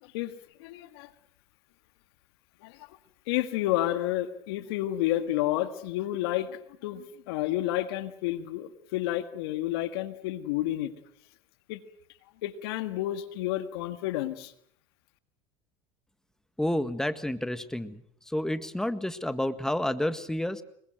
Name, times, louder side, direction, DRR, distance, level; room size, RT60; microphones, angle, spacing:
voice 1, 0.0-0.3 0.6-1.1 2.6-3.0 3.3-10.9 11.7-11.8 12.4-14.5, left 14 dB, 80° left, 11 dB, 1.8 m, -30 dB
voice 2, 16.6-18.0 18.3-20.6, left 1 dB, 5° left, 12 dB, 1.7 m, -30 dB
25.0 x 22.0 x 7.8 m, 0.68 s
supercardioid pair, 90°, 13 cm